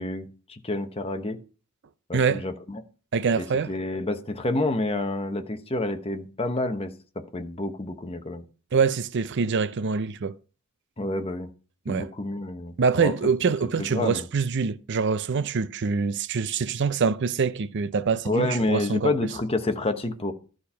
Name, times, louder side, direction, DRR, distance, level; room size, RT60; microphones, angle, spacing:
voice 1, 0.0-1.4 2.1-2.8 3.4-6.9 7.3-8.4 11.0-11.5 11.9-13.1 13.6-14.3 18.2-20.3, left 2 dB, 25° left, 0.9 m, -29 dB
voice 2, 2.1-2.4 3.1-3.7 8.7-10.3 11.9-12.1 12.8-19.1, right 5 dB, 55° right, 0.5 m, -25 dB
12.0 x 4.4 x 5.6 m
head